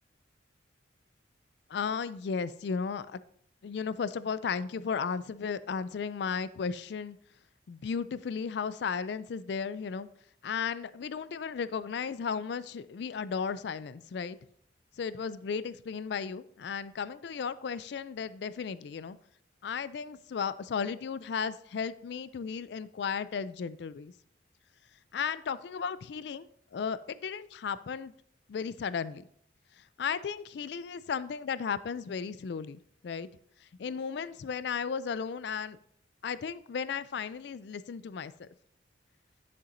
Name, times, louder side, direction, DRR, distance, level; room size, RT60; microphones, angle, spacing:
voice 1, 1.7-3.2 3.6-7.2 7.7-10.1 10.4-14.4 15.0-19.2 19.6-24.1 25.1-26.5 26.7-28.1 28.5-29.2 30.0-33.3 33.8-35.8 36.2-38.5, left 6 dB, 60° left, 16 dB, 0.3 m, -35 dB
10.5 x 6.9 x 2.6 m, 0.64 s
head